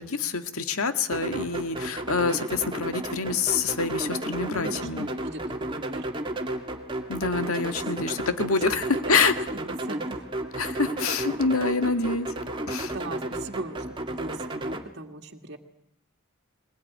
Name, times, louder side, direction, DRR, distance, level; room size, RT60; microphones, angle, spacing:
voice 1, 0.0-5.1 7.1-9.3 10.6-12.3 12.7-12.9, left 4 dB, 85° left, 8 dB, 1.9 m, -26 dB
sound 1, 1.1-14.8, right 1 dB, 20° right, 2.0 m, -33 dB
voice 2, 4.4-6.1 7.4-9.2 9.6-10.2 12.9-15.6, right 2 dB, 50° right, 3 dB, 2.1 m, -40 dB
22.0 x 21.0 x 9.4 m, 0.74 s
head